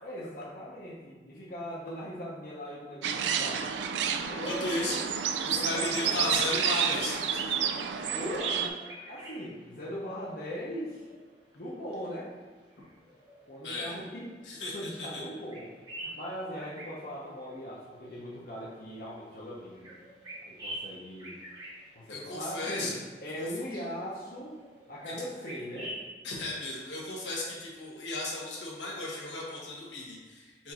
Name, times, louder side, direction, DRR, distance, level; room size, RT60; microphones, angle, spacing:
voice 1, 0.0-3.7 4.3-4.9 5.5-6.2 8.1-11.0 11.5-12.3 13.5-14.4 14.7-15.7 16.0-20.0 20.4-21.3 21.9-24.6 24.9-25.9 27.4-27.5, equal, 55° left, -6 dB, 0.8 m, -39 dB
sound 1, 3.0-8.7, right 8 dB, 75° right, 0.3 m, -30 dB
voice 2, 4.4-7.2 7.5-7.6 13.6-13.9 14.4-15.2 22.1-23.0 26.2-30.7, left 2 dB, 85° left, -4 dB, 1.3 m, -35 dB
sound 2, 8.0-26.1, right 1 dB, 25° right, 1.1 m, -48 dB
4.4 x 2.6 x 4.2 m, 1.4 s
head